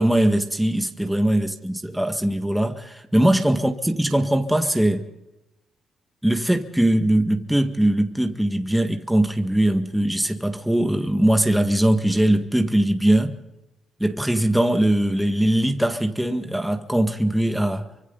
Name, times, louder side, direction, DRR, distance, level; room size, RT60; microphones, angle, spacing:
voice 1, 0.0-5.0 6.2-13.4 14.0-17.9, right 1 dB, 5° right, 1.8 m, -21 dB
29.0 x 24.5 x 4.1 m
cardioid pair, 90°, 0 cm